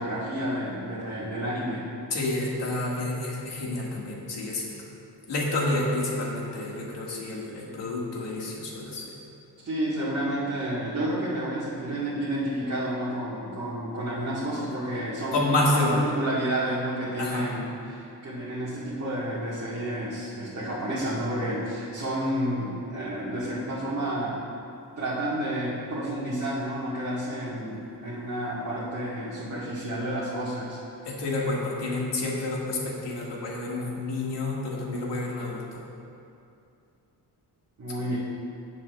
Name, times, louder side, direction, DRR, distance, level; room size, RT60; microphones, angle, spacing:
voice 1, 0.0-1.8 9.6-24.4 25.0-30.8 37.8-38.2, right 1 dB, 40° right, -10 dB, 1.5 m, -30 dB
voice 2, 2.1-4.7 5.3-9.1 15.3-16.0 17.2-17.5 31.1-35.8, left 2 dB, 75° left, -4 dB, 1.9 m, -29 dB
15.5 x 7.1 x 2.3 m, 2.6 s
wide cardioid pair, 155°, 42 cm